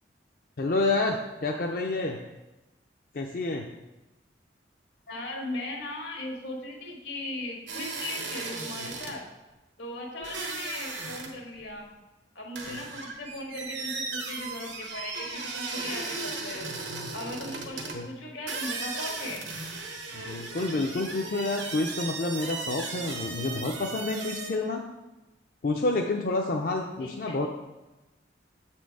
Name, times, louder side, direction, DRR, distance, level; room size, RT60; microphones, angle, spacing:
voice 1, 0.6-2.2 3.1-3.6 12.7-12.8 17.9-18.1 20.1-24.8 25.6-27.5, left 2 dB, 50° left, 1 dB, 0.4 m, -29 dB
voice 2, 5.1-9.2 9.8-11.9 12.3-16.7 17.1-19.5 27.0-27.5, left 1 dB, 85° left, 0 dB, 1.5 m, -38 dB
sound 1, 7.7-9.2 10.2-11.3 11.6-11.7 12.6-18.0 18.5-24.5, right 4 dB, 85° right, 1.0 m, -36 dB
7.2 x 4.4 x 4.7 m, 1.0 s
head